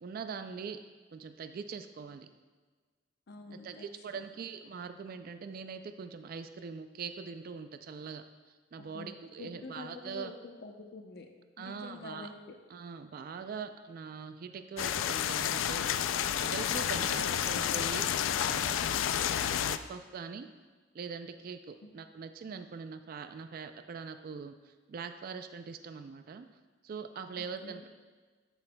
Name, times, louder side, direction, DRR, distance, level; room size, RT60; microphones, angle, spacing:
voice 1, 0.0-0.8 1.1-2.3 3.6-8.2 8.7-10.3 11.6-12.3 12.7-18.8 19.3-20.5 20.9-26.5 26.8-27.9, right 5 dB, 50° right, 9 dB, 0.3 m, -42 dB
voice 2, 3.3-3.9 4.1-4.2 8.8-9.1 9.4-10.3 10.6-11.3 11.6-12.6 21.8-22.1 27.4-27.9, left 3 dB, 55° left, 4 dB, 0.7 m, -47 dB
sound 1, 14.8-19.8, left 9 dB, 85° left, 0.3 m, -30 dB
11.5 x 7.8 x 2.2 m, 1.4 s
head